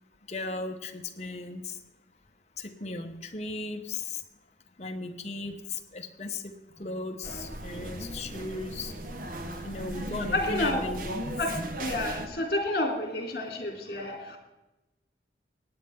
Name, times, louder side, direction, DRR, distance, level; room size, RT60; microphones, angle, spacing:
voice 1, 0.3-1.8 2.6-4.2 4.8-8.9 9.6-11.1, left 3 dB, 40° left, 4 dB, 1.0 m, -36 dB
sound 1, 7.2-12.3, right 1 dB, 50° right, 1.1 m, -37 dB
voice 2, 10.3-10.9 11.4-11.5 11.8-14.4, left 2 dB, 55° left, 1 dB, 3.0 m, -29 dB
16.5 x 9.5 x 3.6 m, 1.0 s
head